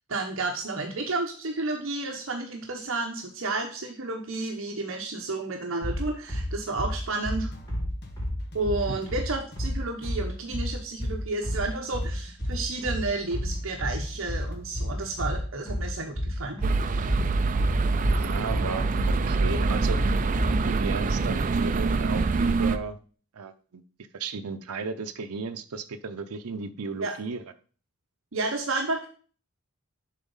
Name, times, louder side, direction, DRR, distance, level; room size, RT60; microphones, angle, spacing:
voice 1, 0.1-7.5 8.5-16.6 27.0-27.1 28.3-29.1, right 3 dB, 60° right, 2 dB, 0.9 m, -31 dB
sound 1, 5.8-20.6, equal, 15° left, 3.0 m, -30 dB
sound 2, 7.5-15.4, left 1 dB, 45° left, 1.0 m, -46 dB
sound 3, 16.6-22.8, right 3 dB, 35° right, 0.3 m, -25 dB
voice 2, 18.1-20.1 20.7-23.0 23.3-23.8 24.1-27.4, right 4 dB, 85° right, 8 dB, 0.6 m, -35 dB
7.5 x 4.0 x 5.3 m, 0.41 s
head